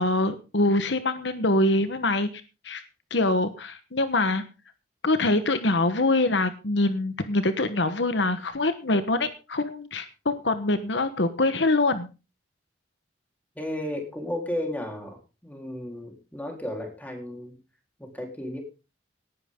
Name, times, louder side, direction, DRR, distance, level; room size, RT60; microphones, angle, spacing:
voice 1, 0.0-2.3 2.6-2.8 3.1-4.4 5.0-12.1, left 2 dB, 70° left, 10 dB, 1.3 m, -24 dB
voice 2, 13.6-17.6 18.0-18.6, left 1 dB, 10° left, 2 dB, 3.9 m, -34 dB
18.5 x 11.0 x 3.8 m, 0.32 s
head